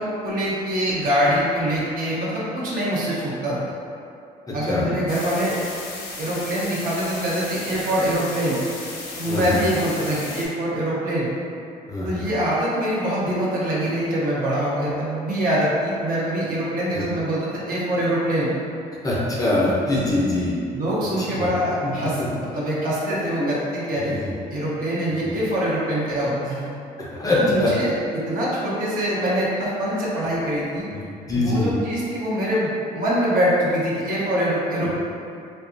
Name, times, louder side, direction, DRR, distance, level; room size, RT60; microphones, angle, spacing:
voice 1, 0.0-3.6 4.5-5.6 6.2-8.6 9.2-11.3 12.0-18.6 20.7-22.2 22.5-24.2 24.5-26.7 27.3-30.9 31.3-34.9, equal, 55° right, -7 dB, 0.8 m, -24 dB
voice 2, 4.5-4.9 9.2-9.6 11.9-12.2 16.9-17.0 19.0-20.6 21.2-21.5 21.8-21.9 22.2-22.3 23.4-23.5 24.1-24.3 27.0-27.7 30.9-31.7, left 1 dB, 20° left, -6 dB, 0.5 m, -23 dB
sound 1, 5.1-10.5, left 3 dB, 75° left, 0.6 m, -35 dB
2.7 x 2.2 x 2.5 m, 2.5 s
cardioid pair, 110°, 17 cm